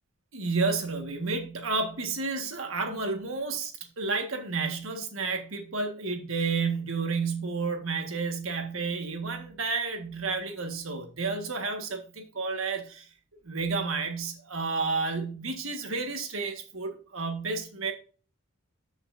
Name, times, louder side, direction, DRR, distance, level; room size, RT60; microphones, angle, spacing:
voice 1, 0.3-13.1 13.5-17.9, right 4 dB, 70° right, 1.7 m, -31 dB
13.5 x 5.7 x 2.7 m
head